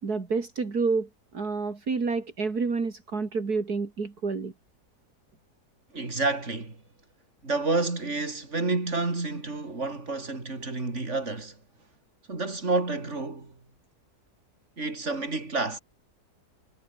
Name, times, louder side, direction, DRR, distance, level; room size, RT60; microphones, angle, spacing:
voice 1, 0.0-1.1 1.3-4.5, right 4 dB, 70° right, 3.4 m, -29 dB
voice 2, 5.9-6.8 7.4-11.6 12.3-13.5 14.8-15.8, right 3 dB, 45° right, 4.4 m, -29 dB
omnidirectional pair, 1.7 m